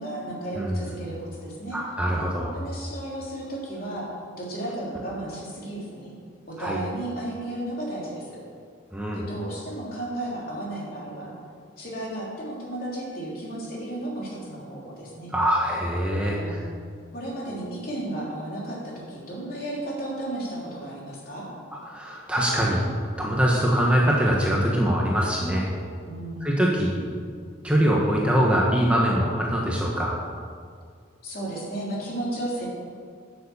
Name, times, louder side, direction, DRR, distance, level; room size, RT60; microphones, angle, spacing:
voice 1, 0.0-1.8 2.5-4.1 4.4-6.1 6.5-8.4 9.1-11.3 11.8-15.3 16.2-16.7 17.1-21.5 26.1-26.8 31.2-32.7, right 1 dB, 45° left, -4 dB, 3.3 m, -34 dB
voice 2, 0.6-0.9 1.7-2.5 6.6-6.8 8.9-9.3 15.3-16.6 21.8-22.8 23.2-25.7 26.4-26.9 27.6-30.2, equal, 5° right, -3 dB, 1.1 m, -23 dB
11.0 x 7.1 x 6.9 m, 2.1 s
head